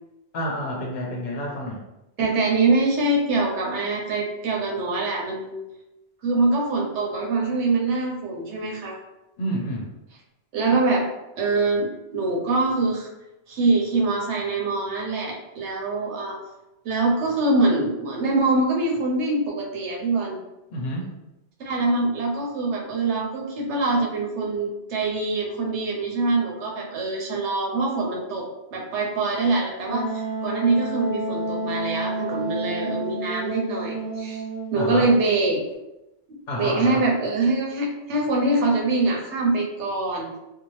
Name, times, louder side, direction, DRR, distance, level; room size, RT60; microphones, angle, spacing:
voice 1, 0.3-1.8 9.4-9.9 20.7-21.1 34.7-35.1 36.5-37.0, equal, 50° left, -1 dB, 0.6 m, -29 dB
voice 2, 2.2-5.6 6.2-9.0 10.5-11.1 11.4-13.1 13.5-16.4 16.8-20.4 21.6-34.4 34.7-35.6 36.5-40.4, right 3 dB, 85° right, -1 dB, 1.0 m, -24 dB
Wind instrument woodwind instrument, 29.9-35.4, right 2 dB, 30° right, 0.7 m, -30 dB
2.7 x 2.0 x 3.1 m, 0.93 s
omnidirectional pair, 1.1 m